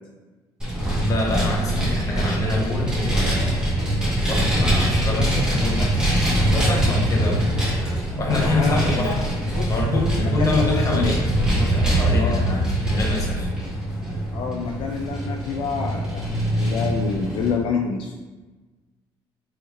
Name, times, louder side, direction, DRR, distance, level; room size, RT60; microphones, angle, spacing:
Vehicle, 0.6-17.5, right 1 dB, 10° right, 1.5 m, -23 dB
voice 1, 1.0-3.6 4.2-6.0 6.5-7.5 8.2-9.2 9.7-13.5, left 1 dB, 35° left, -2 dB, 1.1 m, -26 dB
voice 2, 8.4-9.7 10.2-11.1 12.2-12.5 14.3-16.3 16.5-18.1, left 5 dB, 65° left, 1 dB, 0.4 m, -28 dB
3.5 x 3.2 x 3.1 m, 1.2 s
cardioid pair, 105°, 9 cm